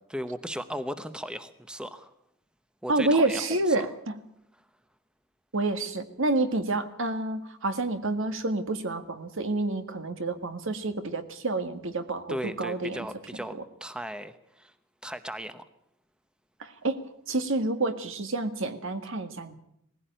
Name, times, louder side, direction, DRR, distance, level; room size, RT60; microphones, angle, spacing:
voice 1, 0.1-2.1 2.8-3.4 3.7-3.9 12.3-14.7 15.0-15.6, equal, 5° right, 11 dB, 0.9 m, -36 dB
voice 2, 2.9-4.1 5.5-13.1 13.5-13.6 16.6-17.0 17.3-19.5, right 2 dB, 65° right, 9 dB, 1.8 m, -28 dB
19.5 x 15.5 x 9.0 m, 0.75 s
head